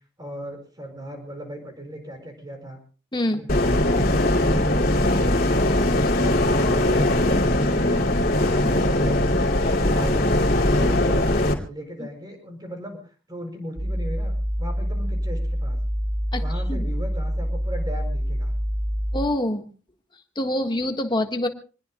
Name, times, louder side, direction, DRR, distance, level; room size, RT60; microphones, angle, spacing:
voice 1, 0.2-2.8 3.3-4.1 4.5-5.5 6.0-7.4 7.7-10.4 10.7-11.3 11.6-13.0 13.3-14.3 14.6-15.8 16.3-18.5, equal, 20° right, 4 dB, 5.4 m, -37 dB
sound 1, 3.5-11.5, left 1 dB, 50° left, 2.7 m, -20 dB
sound 2, 13.8-19.3, equal, 50° right, 4.0 m, -26 dB
voice 2, 19.1-19.7 20.3-21.5, left 1 dB, 25° left, 5 dB, 1.5 m, -25 dB
26.5 x 20.5 x 2.3 m, 0.36 s
head